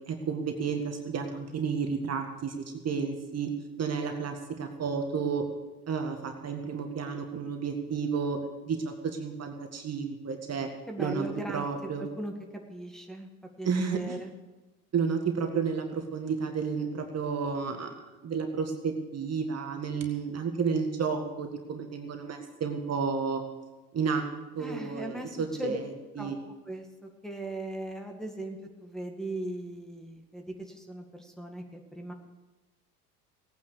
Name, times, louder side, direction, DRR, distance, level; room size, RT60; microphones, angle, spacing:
voice 1, 0.1-3.5 3.8-5.5 5.9-8.4 8.7-10.7 11.0-12.1 13.6-14.2 14.9-17.9 18.2-23.4 23.9-24.3 24.6-26.4, right 5 dB, 35° right, 5 dB, 1.9 m, -31 dB
voice 2, 10.9-11.7 12.0-13.3 13.6-14.3 24.6-25.3 25.6-25.8 26.2-26.3 26.7-32.1, right 1 dB, ahead, 2 dB, 2.1 m, -38 dB
17.5 x 9.4 x 6.8 m, 1.1 s
hypercardioid pair, 70°, 46 cm